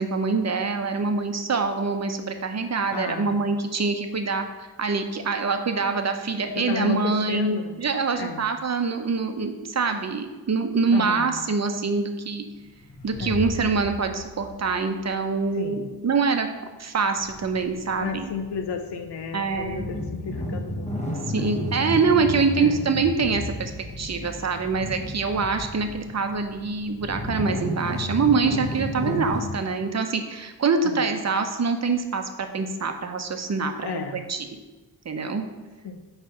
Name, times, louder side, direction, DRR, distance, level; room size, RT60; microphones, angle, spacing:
voice 1, 0.0-4.4 4.8-12.4 13.0-16.5 16.8-18.3 19.3-19.9 21.3-23.7 24.0-34.5 35.0-35.5, right 4 dB, 40° right, 6 dB, 0.9 m, -25 dB
voice 2, 2.9-3.5 6.5-7.8 8.2-8.4 10.9-11.4 13.2-13.5 15.5-15.9 18.0-21.0 21.4-21.6 22.6-22.8 29.1-29.2 30.8-31.0 33.8-34.2 35.8-36.0, left 5 dB, 80° left, 6 dB, 0.9 m, -33 dB
sound 1, 12.4-15.8, equal, 60° left, 2.3 m, -37 dB
sound 2, 17.2-29.5, left 1 dB, 15° left, 1.3 m, -33 dB
9.3 x 3.3 x 5.9 m, 1.2 s
cardioid pair, 80°, 40 cm